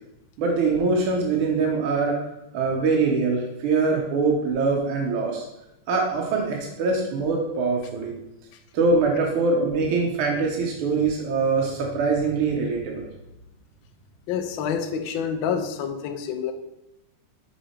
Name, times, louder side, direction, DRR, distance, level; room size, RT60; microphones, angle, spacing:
voice 1, 0.4-2.2 2.5-5.4 5.9-8.1 8.7-13.1, right 4 dB, 80° right, 0 dB, 1.7 m, -23 dB
voice 2, 14.3-16.5, left 7 dB, 70° left, 6 dB, 1.3 m, -27 dB
5.7 x 3.9 x 4.3 m, 0.91 s
omnidirectional pair, 2.4 m